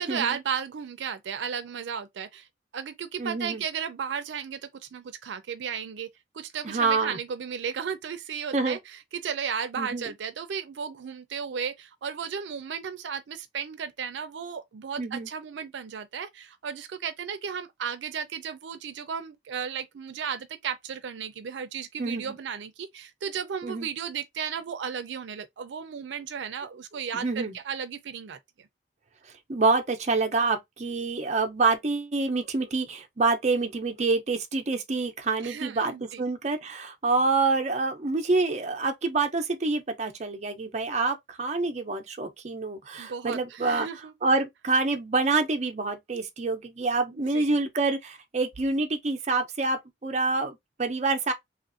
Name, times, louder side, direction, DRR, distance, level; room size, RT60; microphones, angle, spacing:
voice 1, 0.0-2.5 2.7-6.1 6.3-28.7 35.4-36.3 43.0-44.1 47.1-47.5, right 7 dB, 90° right, 0.4 m, -34 dB
voice 2, 3.2-3.6 6.6-7.2 8.5-8.8 9.8-10.1 15.0-15.3 22.0-22.3 23.6-23.9 27.1-27.6 29.5-43.9 44.2-51.3, right 3 dB, 40° right, 0.5 m, -27 dB
3.0 x 2.5 x 2.5 m
head